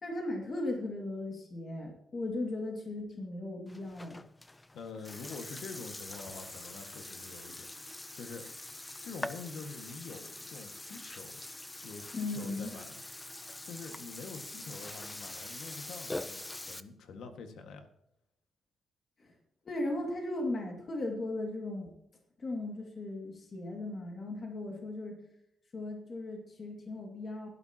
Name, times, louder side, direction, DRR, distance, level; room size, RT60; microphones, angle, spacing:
voice 1, 0.0-4.2 12.1-12.7 19.2-19.3 19.6-21.9 22.4-25.2 25.7-27.5, left 2 dB, 30° left, 2 dB, 2.2 m, -37 dB
Burping eructation, 3.7-16.8, left 1 dB, 10° left, 0.5 m, -44 dB
voice 2, 4.7-7.7 8.1-8.5 9.0-11.4 11.8-13.0 13.6-17.9, left 4 dB, 80° left, 6 dB, 1.8 m, -46 dB
16.5 x 11.5 x 2.9 m, 0.80 s
wide cardioid pair, 170°, 0 cm